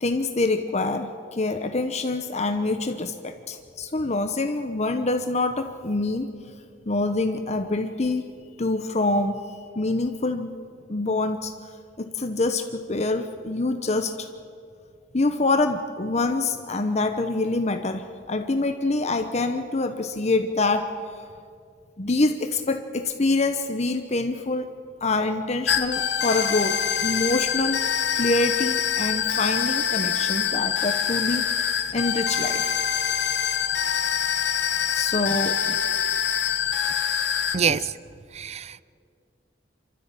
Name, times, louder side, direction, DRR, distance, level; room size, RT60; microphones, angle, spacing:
voice 1, 0.0-6.3 6.9-8.3 8.6-9.4 9.7-10.5 10.9-11.5 12.0-14.3 15.1-20.9 22.0-24.7 25.0-27.8 28.2-31.7 31.9-32.7 34.9-35.8 37.7-37.8, left 2 dB, 40° left, 1.0 m, -25 dB
sound 1, 25.7-37.6, left 8 dB, 75° left, 1.4 m, -25 dB
voice 2, 37.5-37.9 38.4-38.8, right 7 dB, 40° right, 0.5 m, -25 dB
27.5 x 13.5 x 9.1 m
head